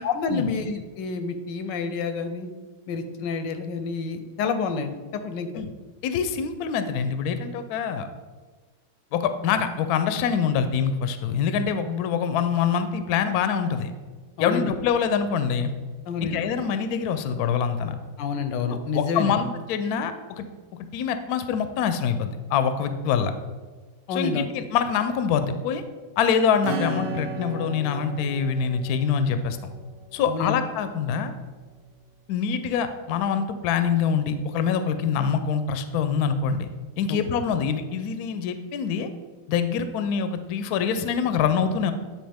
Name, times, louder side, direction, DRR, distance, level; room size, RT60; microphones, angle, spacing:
voice 1, 0.0-2.5 2.9-5.6 14.4-14.7 16.1-16.4 18.2-19.4 24.1-24.5 30.3-30.6 37.1-37.4, left 4 dB, 85° left, 9 dB, 1.3 m, -29 dB
voice 2, 6.0-8.1 9.1-13.9 14.4-15.7 16.2-18.0 18.9-20.5 20.9-23.3 24.1-25.8 26.2-29.6 30.1-31.3 32.3-36.7 37.0-39.1 39.5-41.9, left 7 dB, 70° left, 9 dB, 1.0 m, -25 dB
Acoustic guitar / Strum, 26.6-30.9, right 2 dB, 75° right, 1.5 m, -35 dB
9.3 x 4.2 x 3.4 m, 1.3 s
omnidirectional pair, 1.9 m